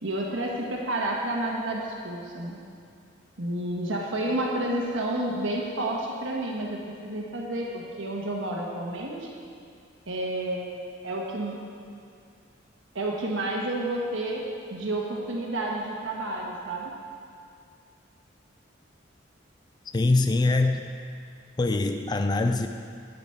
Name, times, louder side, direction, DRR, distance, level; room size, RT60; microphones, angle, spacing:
voice 1, 0.0-2.6 3.4-9.3 10.1-10.8 11.0-11.6 12.9-16.9, right 1 dB, 85° right, -1 dB, 1.3 m, -30 dB
voice 2, 19.9-20.8 21.6-22.7, left 2 dB, 20° left, 7 dB, 0.3 m, -23 dB
10.0 x 9.4 x 4.4 m, 2.3 s
head